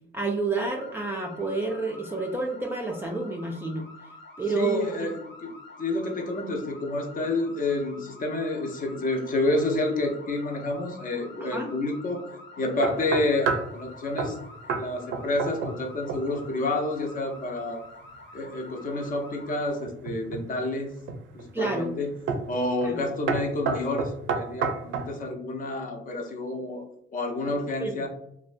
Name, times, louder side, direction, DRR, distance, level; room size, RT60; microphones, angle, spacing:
voice 1, 0.1-3.8 4.4-4.9 11.4-11.7 21.5-21.9 22.8-23.0 27.8-28.1, right 3 dB, 10° right, -1 dB, 0.3 m, -29 dB
sound 1, 0.7-19.7, left 2 dB, 70° left, 0.9 m, -48 dB
voice 2, 4.5-5.5 5.8-14.4 14.7-17.8 18.3-20.9 21.3-22.1 22.5-26.8 27.1-28.1, left 2 dB, 45° left, 3 dB, 0.6 m, -29 dB
sound 2, 12.8-13.7 14.2-14.4 14.7-14.9 15.1-15.8 16.1-16.5 19.8-20.5 21.1-21.5 22.3-22.5 22.8-23.0 23.3-25.1, right 5 dB, 75° right, 0.4 m, -29 dB
2.5 x 2.1 x 2.4 m, 0.74 s
cardioid pair, 90°, 20 cm